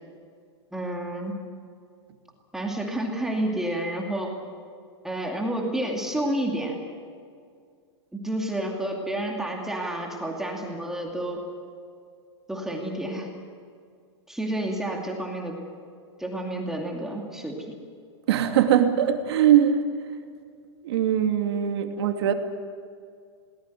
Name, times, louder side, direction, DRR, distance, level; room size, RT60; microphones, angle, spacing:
voice 1, 0.7-1.4 2.5-4.4 5.0-6.8 8.1-11.4 12.5-13.3 14.3-15.6 16.2-17.7, right 1 dB, 5° right, 0 dB, 2.5 m, -30 dB
voice 2, 18.3-19.8 20.8-22.3, right 10 dB, 65° right, 5 dB, 2.6 m, -21 dB
22.0 x 19.0 x 9.4 m, 2.2 s
supercardioid pair, 160°, 15 cm